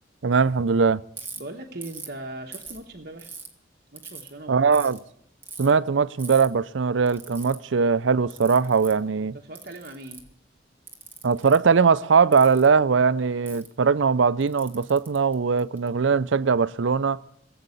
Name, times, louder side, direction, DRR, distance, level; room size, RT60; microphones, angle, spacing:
voice 1, 0.2-1.0 4.5-5.0 5.6-9.4 11.2-17.2, right 5 dB, 90° right, 0.5 m, -20 dB
Ratchet pawl, 1.2-1.4 1.8-2.1 2.5-3.5 4.0-4.3 4.7-5.0 5.4-5.7 6.2-6.5 7.1-7.6 8.3-9.0 9.6-10.3 10.9-11.6 12.3-12.7 13.5-13.7 14.4-15.9, right 5 dB, 10° right, 1.6 m, -41 dB
voice 2, 1.4-3.3 3.9-4.8 8.9-9.0 9.3-10.3, right 1 dB, 55° right, 1.2 m, -39 dB
16.5 x 8.0 x 9.8 m
head